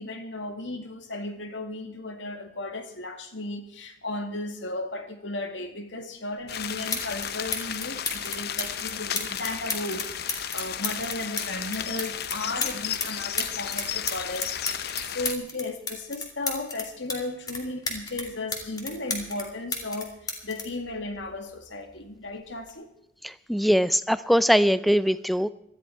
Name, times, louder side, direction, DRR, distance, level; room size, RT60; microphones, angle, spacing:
voice 1, 0.0-22.9, left 2 dB, 75° left, 6 dB, 2.1 m, -35 dB
sound 1, 6.4-6.5 6.9-7.3 7.5-13.1 13.4-17.2 17.5-19.5 19.7-21.6 22.5-22.7, left 3 dB, 20° left, 2.6 m, -32 dB
sound 2, 6.5-15.3, left 9 dB, 55° left, 0.7 m, -34 dB
voice 2, 23.2-25.5, equal, ahead, 15 dB, 0.4 m, -22 dB
18.0 x 13.5 x 4.5 m, 0.80 s
head